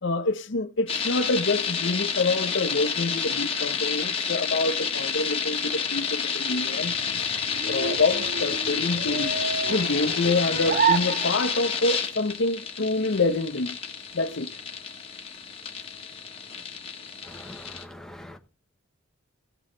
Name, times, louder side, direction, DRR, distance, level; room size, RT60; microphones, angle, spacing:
voice 1, 0.0-7.3 7.6-9.3 9.7-13.8 14.1-14.5, left 3 dB, 55° left, 0.7 m, -26 dB
sound 1, 0.9-17.8, left 6 dB, 25° left, 1.3 m, -30 dB
sound 2, 6.8-11.8, right 6 dB, 40° right, 0.5 m, -30 dB
voice 2, 17.3-18.4, left 1 dB, ahead, 1.0 m, -43 dB
16.5 x 6.4 x 3.8 m
head